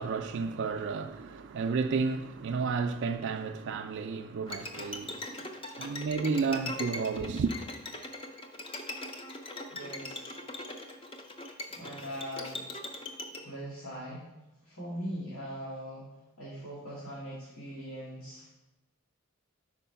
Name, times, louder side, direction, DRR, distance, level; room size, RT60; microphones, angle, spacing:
voice 1, 0.0-5.5 5.8-7.6, right 5 dB, 55° right, 0.3 m, -32 dB
Bowed string instrument, 4.5-13.4, left 1 dB, 25° left, 0.5 m, -41 dB
voice 2, 9.7-10.4 11.7-12.7 13.3-14.2 14.6-16.1 16.4-18.5, equal, 85° left, 1.9 m, -41 dB
5.0 x 4.6 x 5.6 m
head